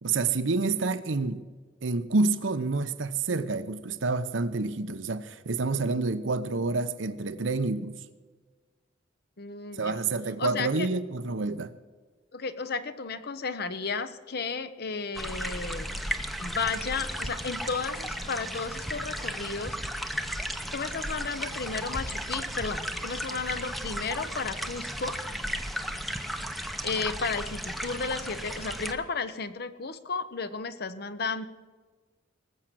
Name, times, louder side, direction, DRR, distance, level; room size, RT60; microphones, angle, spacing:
voice 1, 0.0-1.4 1.8-8.0 9.8-11.7, right 3 dB, 80° right, 0.8 m, -28 dB
voice 2, 9.4-10.0 10.4-10.9 12.3-15.9 16.4-19.8 20.7-25.2 26.8-31.5, left 4 dB, 55° left, 0.8 m, -33 dB
sound 1, 15.2-28.9, equal, ahead, 0.7 m, -35 dB
19.5 x 7.4 x 7.6 m
head